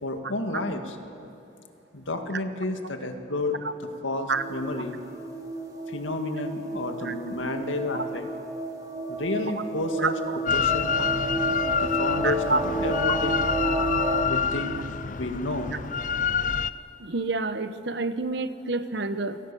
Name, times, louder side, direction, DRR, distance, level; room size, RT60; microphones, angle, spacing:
voice 1, 0.0-1.0 1.9-3.6 4.0-5.0 5.9-8.3 9.1-10.2 10.5-11.0 11.8-13.4 14.3-14.7 15.1-15.8, left 2 dB, 85° left, 5 dB, 2.0 m, -31 dB
sound 1, 4.3-14.2, right 2 dB, 20° right, 2.0 m, -31 dB
Drill, 10.5-16.7, left 6 dB, 40° left, 0.5 m, -27 dB
voice 2, 12.2-12.6 13.1-13.2 17.0-19.4, right 3 dB, 65° right, 11 dB, 1.0 m, -28 dB
29.0 x 18.5 x 7.1 m, 2.8 s
head